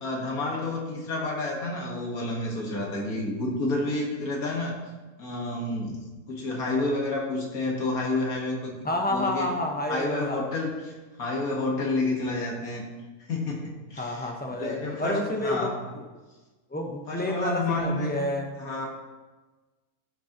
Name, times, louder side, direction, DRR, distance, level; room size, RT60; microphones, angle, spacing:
voice 1, 0.0-4.8 5.2-6.0 6.3-8.8 9.1-9.5 9.9-12.9 13.3-14.3 14.6-15.8 17.1-18.1 18.6-18.9, left 2 dB, 75° left, -1 dB, 2.0 m, -29 dB
voice 2, 8.8-10.5 14.0-15.7 16.7-18.5, left 1 dB, 10° left, 2 dB, 0.8 m, -29 dB
14.5 x 6.2 x 2.9 m, 1.2 s
omnidirectional pair, 1.6 m